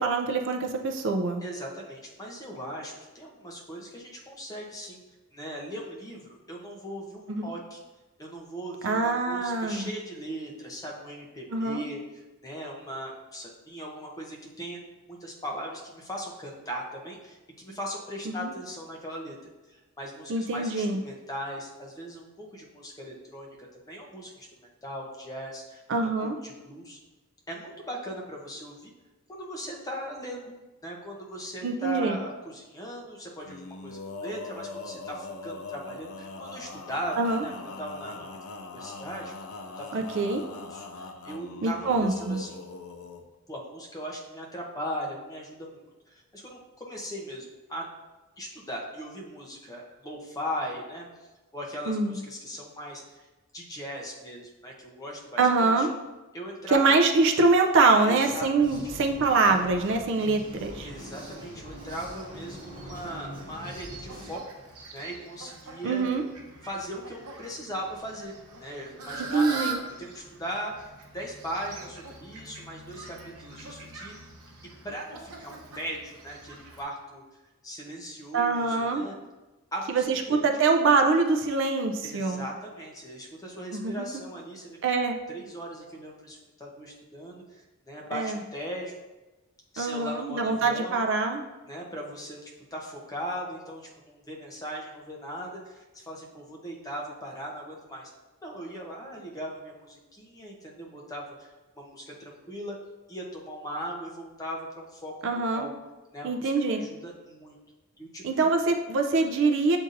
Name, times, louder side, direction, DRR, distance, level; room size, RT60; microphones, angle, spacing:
voice 1, 0.0-1.4 7.3-7.5 8.8-9.9 11.5-11.8 18.4-18.5 20.3-21.0 25.9-26.4 31.6-32.2 37.2-37.4 39.9-40.4 41.6-42.4 51.9-52.2 55.4-55.9 56.7-60.9 65.8-66.2 69.3-69.8 78.3-79.0 79.9-82.5 83.7-84.1 84.8-85.2 88.1-88.4 89.8-91.4 105.2-105.7 106.2-106.8 108.2-109.8, right 3 dB, 55° right, 4 dB, 0.4 m, -24 dB
voice 2, 1.4-5.0 5.3-7.8 8.2-14.8 15.1-19.4 19.7-24.5 24.8-27.0 27.5-28.9 29.3-30.5 30.8-38.3 38.7-39.3 39.8-40.0 40.6-42.6 43.5-45.8 46.1-47.9 48.4-51.1 51.5-53.3 53.5-55.9 56.3-57.0 58.1-58.8 60.8-64.4 64.9-66.1 66.6-68.3 68.6-69.6 70.0-70.7 71.1-74.2 74.8-77.2 77.6-79.1 79.7-80.5 82.0-84.8 85.3-89.0 89.7-91.0 91.7-98.1 98.4-102.8 103.1-105.1 105.5-105.7 106.1-107.5 108.0-108.5, equal, 15° left, -1 dB, 0.7 m, -39 dB
Male singing, 33.4-43.2, left 3 dB, 75° left, 0.5 m, -41 dB
sound 1, 58.6-64.4, equal, 25° right, 0.9 m, -43 dB
Fowl, 60.4-76.8, right 3 dB, 80° right, 0.8 m, -44 dB
7.7 x 2.7 x 2.5 m, 1.1 s
head